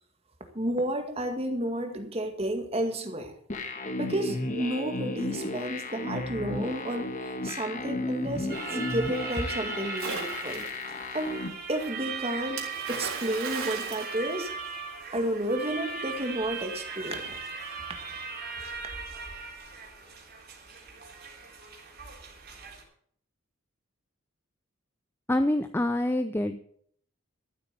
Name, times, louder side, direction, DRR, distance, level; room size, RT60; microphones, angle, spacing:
voice 1, 0.5-3.3 4.0-7.1 7.4-10.6 11.1-11.4 11.7-12.6 12.9-14.5 15.1-17.5, right 1 dB, 30° right, 5 dB, 2.0 m, -31 dB
sound 1, 3.5-11.5, left 2 dB, 35° left, 1.4 m, -34 dB
sound 2, 8.5-22.8, right 5 dB, 45° right, 3.9 m, -39 dB
Splash splatter, 10.0-10.9 12.6-15.0, right 4 dB, 80° right, 3.7 m, -37 dB
voice 2, 25.3-26.6, left 1 dB, 10° left, 9 dB, 0.5 m, -26 dB
13.5 x 8.2 x 6.9 m, 0.62 s
head